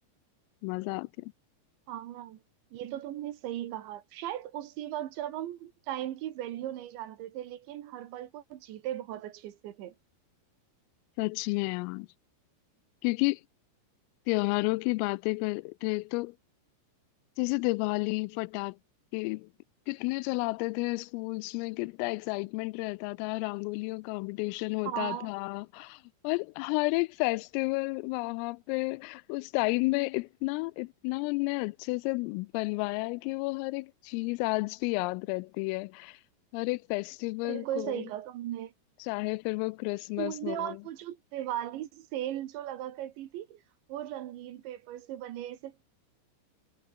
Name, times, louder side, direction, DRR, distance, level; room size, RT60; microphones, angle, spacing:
voice 1, 0.6-1.3 11.2-12.1 13.0-13.4 14.3-16.4 17.4-18.8 19.1-19.5 19.9-36.2 36.5-38.0 39.0-40.8, left 26 dB, 90° left, 3.2 m, -31 dB
voice 2, 1.9-2.4 2.7-9.9 24.9-25.3 37.4-38.7 40.2-43.6 43.9-45.8, right 12 dB, 70° right, 3.6 m, -37 dB
omnidirectional pair, 5.8 m